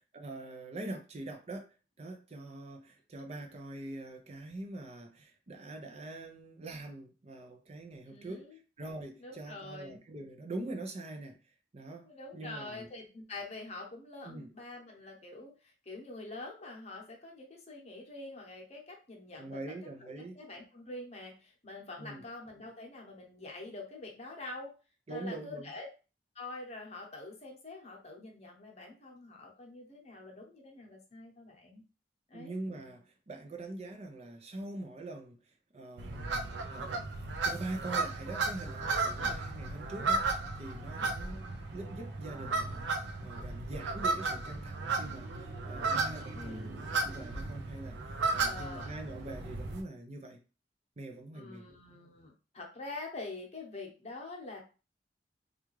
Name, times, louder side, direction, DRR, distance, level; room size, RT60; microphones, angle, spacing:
voice 1, 0.0-11.4 11.7-12.9 14.2-14.5 19.4-20.4 22.0-22.2 25.1-25.7 32.3-50.4 51.0-51.6, right 2 dB, 40° right, 3 dB, 0.5 m, -44 dB
voice 2, 8.1-8.6 9.2-10.0 12.0-19.7 20.0-24.7 25.1-25.9 26.3-31.8 32.3-32.5 39.2-39.3 41.0-41.2 46.3-47.1 48.4-48.9 51.3-54.6, left 2 dB, 40° left, 1 dB, 0.9 m, -46 dB
sound 1, 36.0-49.8, right 3 dB, 85° right, 0.5 m, -34 dB
3.4 x 2.4 x 3.1 m, 0.33 s
head